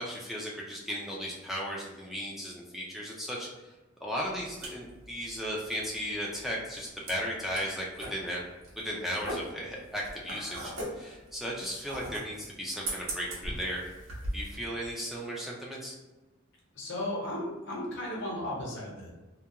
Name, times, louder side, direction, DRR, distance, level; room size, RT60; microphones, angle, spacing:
voice 1, 0.0-3.5 4.0-8.4 8.8-13.8 14.3-16.0, equal, ahead, -4 dB, 0.3 m, -36 dB
sound 1, 4.2-14.6, right 1 dB, 75° right, 0.8 m, -40 dB
voice 2, 16.7-19.1, left 1 dB, 60° left, -3 dB, 0.8 m, -35 dB
2.3 x 2.2 x 2.8 m, 1.1 s
head